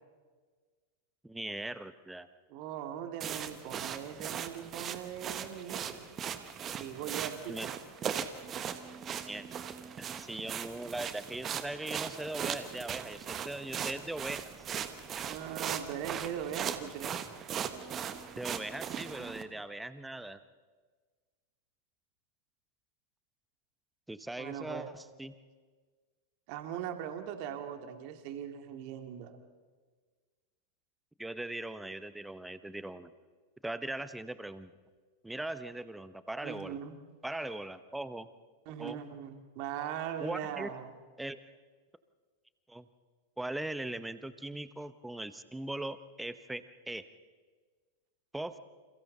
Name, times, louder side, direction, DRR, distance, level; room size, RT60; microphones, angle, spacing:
voice 1, 1.2-2.3 7.5-7.7 8.1-8.2 9.3-9.5 10.0-14.4 18.4-20.4 24.1-25.3 31.2-33.1 33.6-34.7 35.2-36.8 37.2-38.3 38.8-39.0 40.2-40.7 41.2-41.4 42.7-42.9 43.4-47.1 48.3-48.6, right 2 dB, 5° right, 13 dB, 1.0 m, -40 dB
voice 2, 2.5-6.1 6.8-7.7 15.3-17.1 24.4-24.9 26.5-29.4 36.4-37.0 38.7-40.9, right 9 dB, 45° right, 6 dB, 2.3 m, -40 dB
sound 1, 3.2-19.4, right 8 dB, 25° right, 1.4 m, -39 dB
29.0 x 28.0 x 4.0 m, 1.5 s
figure-of-eight pair, 90°, 0 cm